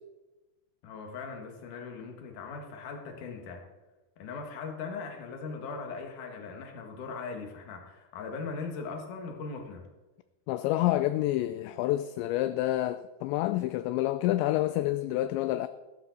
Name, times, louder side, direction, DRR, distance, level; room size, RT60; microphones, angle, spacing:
voice 1, 0.8-3.6 4.2-9.8, left 4 dB, 55° left, 2.7 m, -39 dB
voice 2, 10.5-15.7, left 15 dB, 85° left, 2.6 m, -28 dB
15.0 x 13.0 x 4.1 m
omnidirectional pair, 5.5 m